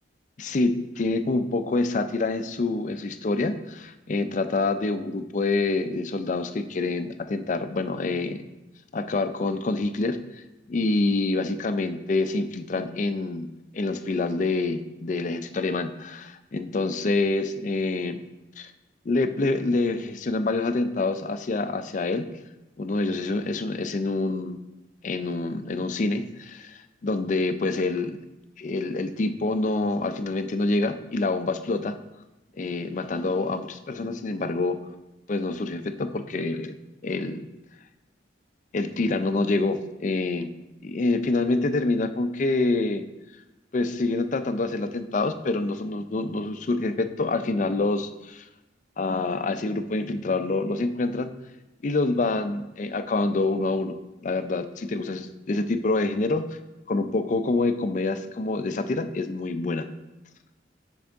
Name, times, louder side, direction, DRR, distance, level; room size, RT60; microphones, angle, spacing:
voice 1, 0.4-8.4 8.9-10.4 10.7-13.5 13.7-18.2 18.6-18.7 19.1-22.3 22.8-24.6 25.0-28.2 28.6-32.0 32.6-34.8 35.3-36.8 37.0-37.5 38.7-40.5 40.8-43.0 43.7-48.4 49.0-51.3 51.8-53.9 54.2-56.6 56.9-59.9, left 3 dB, 40° left, 9 dB, 0.4 m, -26 dB
6.3 x 5.4 x 3.5 m, 1.0 s
head